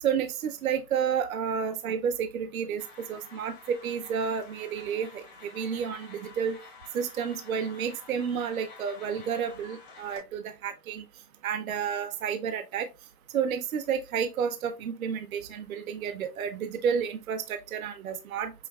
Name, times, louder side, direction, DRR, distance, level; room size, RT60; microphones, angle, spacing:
voice 1, 0.0-6.6 6.9-11.0 11.4-12.9 13.3-18.5, right 7 dB, 60° right, 0.6 m, -31 dB
sound 1, 2.8-10.2, left 5 dB, 25° left, 1.3 m, -50 dB
5.6 x 3.1 x 2.2 m
hypercardioid pair, 160°, 47 cm